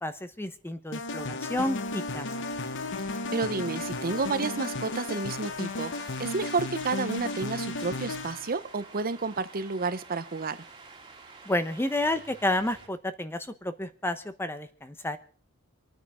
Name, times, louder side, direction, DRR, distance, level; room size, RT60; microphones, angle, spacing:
voice 1, 0.0-2.3 11.4-15.2, left 1 dB, 10° left, 1.0 m, -30 dB
sound 1, 0.9-8.6, left 3 dB, 60° left, 1.0 m, -34 dB
sound 2, 2.2-12.9, right 4 dB, 25° right, 2.5 m, -50 dB
voice 2, 3.3-10.6, right 4 dB, 45° right, 0.8 m, -31 dB
27.0 x 9.5 x 4.9 m
head